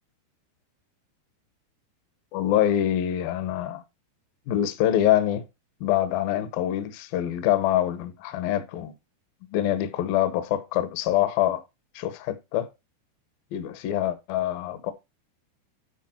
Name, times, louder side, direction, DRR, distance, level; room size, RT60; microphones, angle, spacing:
voice 1, 2.3-3.8 4.5-5.4 5.8-8.9 9.5-11.6 12.0-12.7 13.5-14.9, left 12 dB, 70° left, 2.4 m, -25 dB
12.5 x 4.9 x 4.3 m
omnidirectional pair, 5.2 m